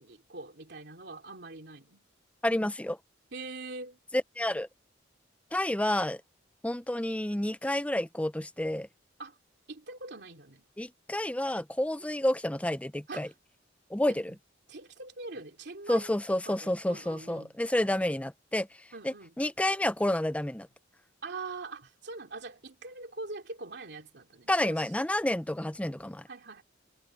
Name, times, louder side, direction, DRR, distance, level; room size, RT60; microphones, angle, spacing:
voice 1, 0.0-2.0 3.3-4.0 9.2-9.4 9.7-10.6 13.1-13.3 14.1-14.2 14.7-16.2 16.5-17.6 18.9-19.4 21.2-24.9 26.3-26.6, right 3 dB, 60° right, 2.8 m, -43 dB
voice 2, 2.4-3.0 4.4-4.7 5.5-6.2 6.6-8.9 10.8-13.3 13.9-14.3 15.9-18.7 19.0-20.7 24.5-26.2, left 1 dB, 5° left, 0.6 m, -29 dB
head